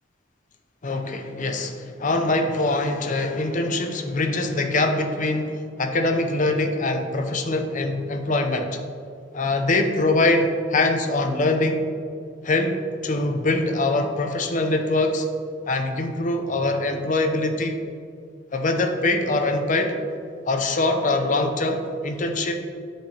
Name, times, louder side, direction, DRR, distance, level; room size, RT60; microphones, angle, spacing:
voice 1, 0.8-8.7 9.3-11.9 12.4-15.3 15.7-17.8 18.5-19.9 20.5-22.6, left 2 dB, 40° left, 6 dB, 0.7 m, -23 dB
10.5 x 5.9 x 3.3 m, 2.3 s
head